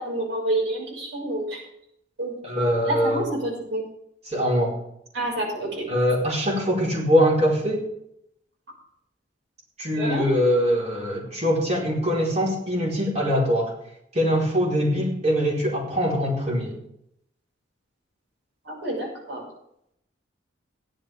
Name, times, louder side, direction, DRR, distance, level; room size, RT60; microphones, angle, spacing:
voice 1, 0.0-1.6 2.2-3.8 5.1-5.9 10.0-10.2 18.7-19.4, right 1 dB, 80° right, -2 dB, 6.1 m, -28 dB
voice 2, 2.4-3.3 4.2-4.8 5.9-7.9 9.8-13.7 14.1-16.8, equal, 35° right, -3 dB, 4.5 m, -23 dB
16.5 x 11.5 x 3.6 m, 0.74 s
head